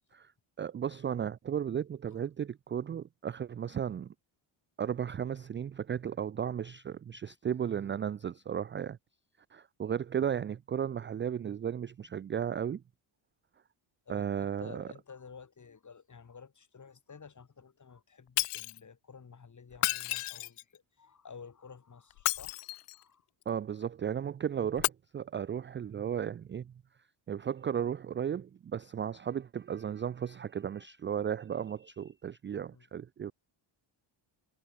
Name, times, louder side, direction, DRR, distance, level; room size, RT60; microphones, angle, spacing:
voice 1, 0.6-4.1 4.8-9.0 9.5-12.8 14.1-14.8 23.5-26.7 27.3-33.3, right 8 dB, 25° right, 0.3 m, -35 dB
voice 2, 14.0-23.3 32.7-32.9, left 5 dB, 35° left, 5.0 m, -52 dB
Shatter, 18.4-18.8 19.7-20.8 22.1-23.0 24.7-24.9, left 20 dB, 90° left, 0.7 m, -32 dB
cardioid pair, 105°, 50 cm